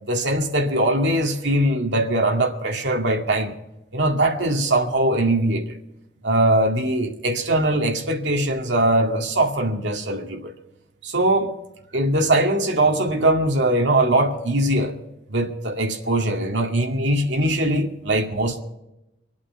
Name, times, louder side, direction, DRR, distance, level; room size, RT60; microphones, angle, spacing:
voice 1, 0.1-3.5 3.9-5.8 6.2-10.5 11.0-11.5 11.9-15.0 15.3-18.6, right 1 dB, 80° right, 2 dB, 2.1 m, -21 dB
24.5 x 8.6 x 5.7 m, 0.90 s
head